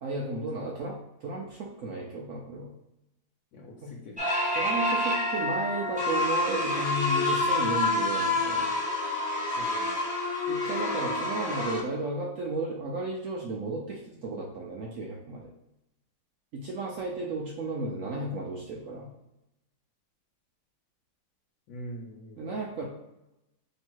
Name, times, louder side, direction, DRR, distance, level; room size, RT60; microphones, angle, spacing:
voice 1, 0.0-2.7 3.8-3.9 4.6-8.7 10.5-15.5 16.5-19.1 22.4-22.8, right 2 dB, 85° right, -2 dB, 0.7 m, -34 dB
voice 2, 3.5-4.2 9.6-9.9 21.7-22.7, equal, 75° left, -2 dB, 1.4 m, -44 dB
sound 1, 4.2-11.8, left 2 dB, 5° right, 0.5 m, -28 dB
3.1 x 2.8 x 4.5 m, 0.92 s
omnidirectional pair, 2.0 m